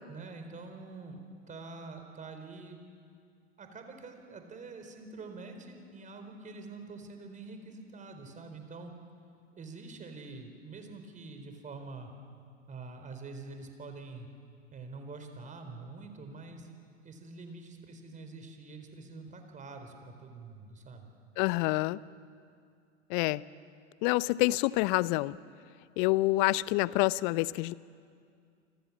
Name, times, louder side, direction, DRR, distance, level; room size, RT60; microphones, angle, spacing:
voice 1, 0.1-2.8 3.6-8.9 9.6-12.1 12.7-14.3 14.7-16.7 17.0-21.1, right 3 dB, 20° right, 6 dB, 4.4 m, -46 dB
voice 2, 21.4-22.0 23.1-23.4 24.0-25.4 26.0-27.7, left 19 dB, 40° left, 20 dB, 0.7 m, -27 dB
29.0 x 26.0 x 7.4 m, 2.3 s
figure-of-eight pair, 95°, 37 cm